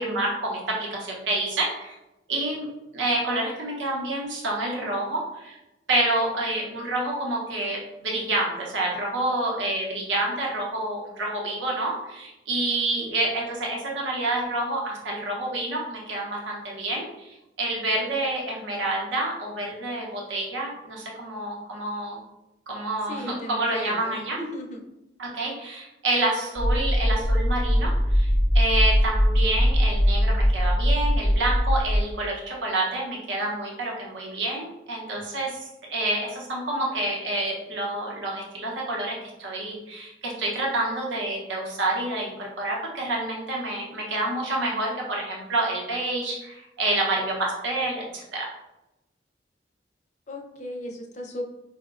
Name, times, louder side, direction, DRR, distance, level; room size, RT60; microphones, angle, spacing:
voice 1, 0.0-2.0 2.3-2.7 2.9-5.6 5.9-22.2 22.7-24.4 25.2-48.5, right 2 dB, 85° right, -2 dB, 0.7 m, -28 dB
voice 2, 23.1-24.2 24.5-24.8 50.3-51.4, left 1 dB, 40° left, 1 dB, 0.4 m, -36 dB
sound 1, 26.6-32.0, equal, 20° right, 0.6 m, -21 dB
4.7 x 2.0 x 2.3 m, 0.94 s
head